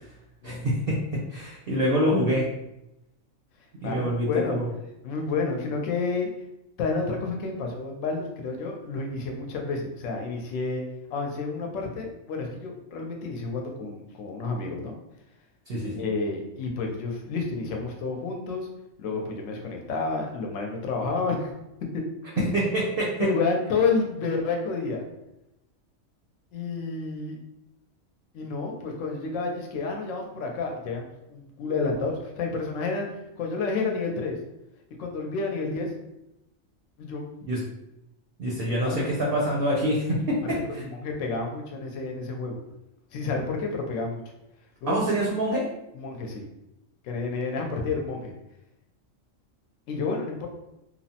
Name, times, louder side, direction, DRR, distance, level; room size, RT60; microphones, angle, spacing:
voice 1, 0.4-1.0 1.3-2.5 3.8-4.7 15.7-16.0 22.5-23.1 37.5-37.6 38.4-40.4 40.7-40.8 44.9-45.6, equal, 60° right, -4 dB, 0.7 m, -25 dB
voice 2, 3.8-4.6 5.0-6.3 6.8-10.8 11.1-14.9 15.9-18.7 19.0-21.5 21.9-22.0 22.3-22.5 23.2-25.0 26.5-27.4 28.3-34.4 35.0-35.9 37.0-37.3 38.5-39.2 40.5-42.6 43.1-44.2 44.8-45.0 45.9-46.5 47.0-48.3 49.9-50.5, left 4 dB, 75° left, 1 dB, 0.9 m, -30 dB
3.0 x 2.0 x 2.7 m, 0.87 s
omnidirectional pair, 1.4 m